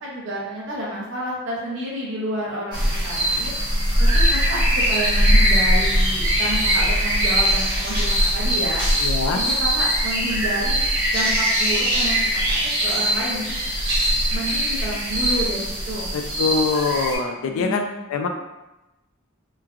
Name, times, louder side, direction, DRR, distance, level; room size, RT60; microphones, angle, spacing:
voice 1, 0.0-3.5 4.0-4.6 4.9-8.8 9.3-10.9 11.1-13.6 14.3-16.1 17.5-18.1, right 1 dB, 65° right, -5 dB, 0.7 m, -30 dB
sound 1, 2.7-17.2, equal, 20° right, 0.9 m, -21 dB
voice 2, 9.0-9.4 16.1-17.8 18.1-18.3, left 4 dB, 85° left, 3 dB, 0.3 m, -23 dB
3.1 x 2.2 x 2.4 m, 0.98 s
head